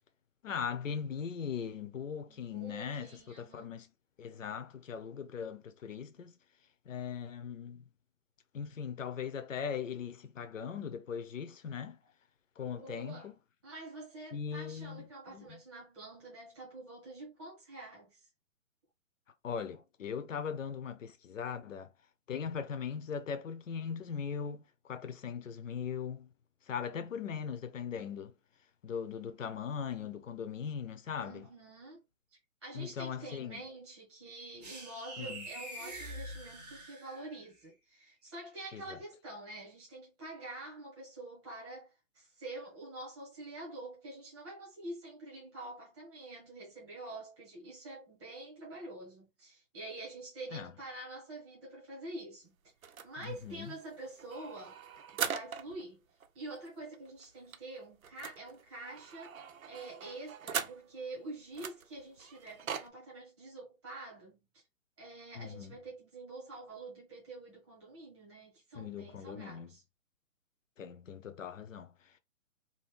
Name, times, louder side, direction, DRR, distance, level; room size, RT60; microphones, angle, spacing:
voice 1, 0.4-3.9 4.2-6.4 6.9-7.8 8.5-12.0 12.6-13.3 14.3-15.6 19.4-21.9 22.3-26.3 26.7-28.3 28.8-31.5 32.7-33.6 35.2-35.5 38.7-38.8 50.5-50.7 53.2-53.8 65.3-65.8 68.7-69.7 70.8-72.2, left 7 dB, 65° left, 0.7 m, -39 dB
voice 2, 2.3-3.7 12.7-13.3 13.6-18.3 31.2-32.0 32.6-52.5 53.0-54.8 55.1-56.0 56.3-59.4 59.7-64.6 65.0-69.8, right 2 dB, 5° right, 1.0 m, -47 dB
sound 1, 34.6-37.5, right 1 dB, 30° right, 0.7 m, -45 dB
sound 2, 52.8-55.8 56.2-56.3 56.6-56.7 56.9-61.1 61.5-62.9, right 7 dB, 85° right, 0.7 m, -41 dB
2.8 x 2.6 x 3.2 m
hypercardioid pair, 175°, 41 cm